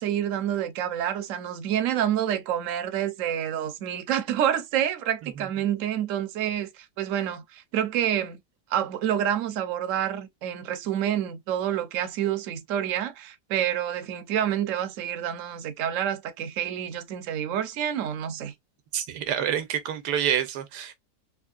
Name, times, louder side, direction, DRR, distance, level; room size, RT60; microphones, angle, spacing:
voice 1, 0.0-8.4 8.7-18.5, right 10 dB, 65° right, 0.9 m, -28 dB
voice 2, 18.9-21.0, right 9 dB, 85° right, 1.3 m, -27 dB
3.5 x 3.0 x 2.3 m
omnidirectional pair, 1.7 m